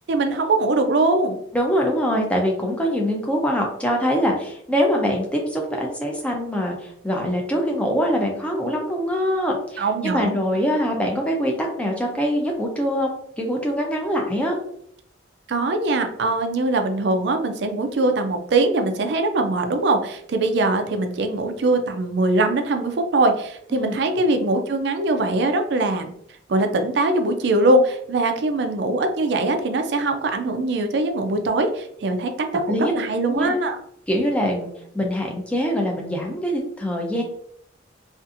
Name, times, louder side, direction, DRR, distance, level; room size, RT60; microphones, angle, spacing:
voice 1, 0.1-1.4 9.8-10.4 15.5-26.1 26.5-33.8, right 2 dB, 60° right, 6 dB, 0.4 m, -22 dB
voice 2, 1.5-14.6 23.7-24.0 32.7-32.9 33.3-33.6 34.1-34.7 34.9-37.2, equal, 5° left, 0 dB, 0.4 m, -23 dB
2.6 x 2.4 x 2.5 m, 0.69 s
head